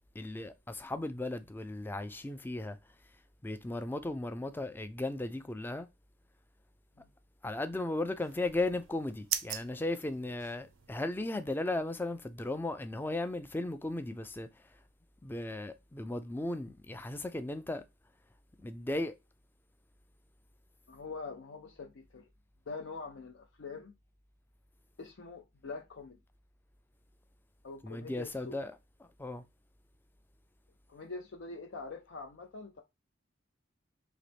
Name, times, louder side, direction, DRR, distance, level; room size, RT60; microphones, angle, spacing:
voice 1, 0.2-2.8 3.4-5.9 7.4-14.5 15.2-17.8 18.6-19.1 27.8-28.7 29.2-29.4, left 2 dB, 10° left, 0.3 m, -36 dB
sound 1, 8.2-11.0, right 10 dB, 70° right, 0.5 m, -41 dB
voice 2, 20.9-22.3 22.7-23.9 25.0-26.2 27.6-28.6 30.9-32.8, left 4 dB, 65° left, 0.5 m, -44 dB
3.9 x 2.9 x 3.3 m
head